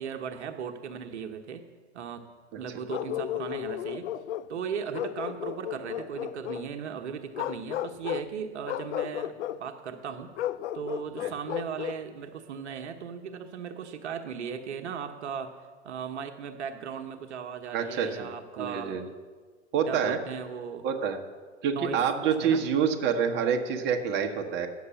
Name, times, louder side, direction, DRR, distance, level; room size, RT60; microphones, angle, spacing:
voice 1, 0.0-1.7 1.9-2.2 2.6-4.1 4.5-9.3 9.6-10.3 10.7-15.5 15.8-19.0 19.9-20.9 21.7-22.6, right 7 dB, 75° right, 6 dB, 1.0 m, -37 dB
Bark, 2.9-4.5 4.9-6.7 7.3-8.3 8.6-9.6 10.4-12.0, left 12 dB, 80° left, 0.5 m, -34 dB
voice 2, 17.7-18.3 18.6-19.0 19.7-20.2 20.8-21.2 21.6-24.7, right 7 dB, 30° right, 2 dB, 1.1 m, -27 dB
9.7 x 6.7 x 7.0 m, 1.5 s
hypercardioid pair, 115°, 35 cm